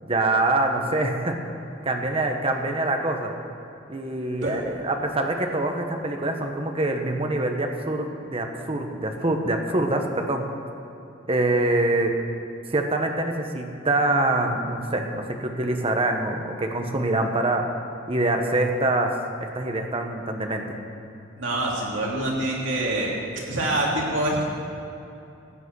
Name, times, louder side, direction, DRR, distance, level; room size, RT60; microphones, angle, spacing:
voice 1, 0.0-1.4 1.8-3.3 3.9-10.5 11.3-12.1 12.7-17.7 18.1-19.1 19.4-20.8, right 2 dB, 30° right, 3 dB, 1.2 m, -25 dB
voice 2, 21.4-23.1 23.5-24.4, right 1 dB, 75° right, -4 dB, 3.3 m, -25 dB
15.0 x 9.2 x 6.3 m, 2.8 s
head